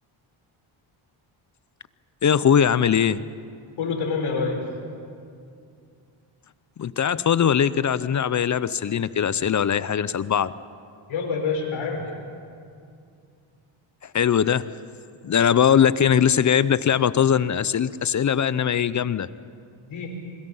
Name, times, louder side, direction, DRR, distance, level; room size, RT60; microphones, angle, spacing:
voice 1, 2.2-3.2 6.8-10.5 14.1-14.6 15.2-19.3, left 8 dB, 40° left, 16 dB, 0.6 m, -20 dB
voice 2, 3.8-4.8 11.1-12.2 19.9-20.1, left 4 dB, 75° left, 2 dB, 4.8 m, -27 dB
27.5 x 22.5 x 5.6 m, 2.4 s
cardioid pair, 105°, 49 cm